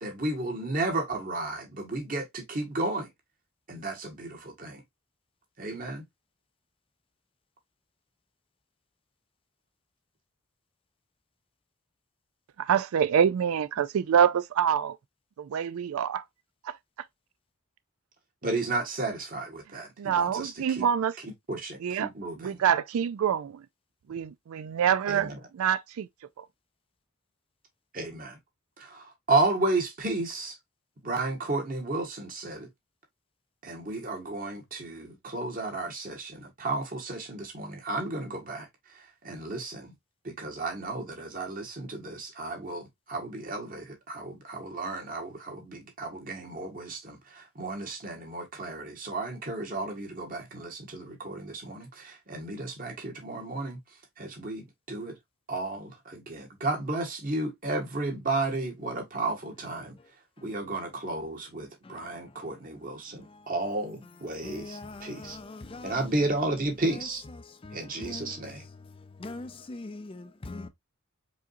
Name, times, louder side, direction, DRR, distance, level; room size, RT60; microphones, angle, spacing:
voice 1, 0.0-3.1 3.7-4.8 5.6-6.0 18.4-20.9 21.2-22.6 25.1-25.4 27.9-28.4 28.8-30.6 31.0-32.7 33.6-39.9 40.2-53.8 54.2-55.2 55.5-60.0 60.4-65.4 65.8-67.2 67.7-68.7, right 2 dB, 40° right, 1.7 m, -33 dB
voice 2, 12.6-15.0 15.4-16.2 16.6-16.8 20.0-21.2 21.8-22.1 22.4-23.7 24.1-26.1 26.4-26.5, right 8 dB, 85° right, 0.3 m, -26 dB
voice 3, 64.4-66.0 67.6-68.4 69.2-70.7, left 2 dB, 25° left, 0.4 m, -41 dB
4.9 x 3.9 x 2.6 m
head